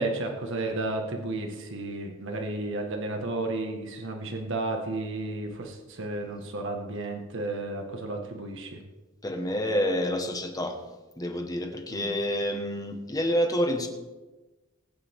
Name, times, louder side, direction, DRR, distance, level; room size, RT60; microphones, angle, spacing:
voice 1, 0.0-8.8 11.9-12.1, right 2 dB, 65° right, 3 dB, 1.8 m, -32 dB
voice 2, 9.2-10.8 11.2-13.9, equal, 20° left, 4 dB, 1.6 m, -28 dB
19.5 x 9.4 x 3.8 m, 1.2 s
head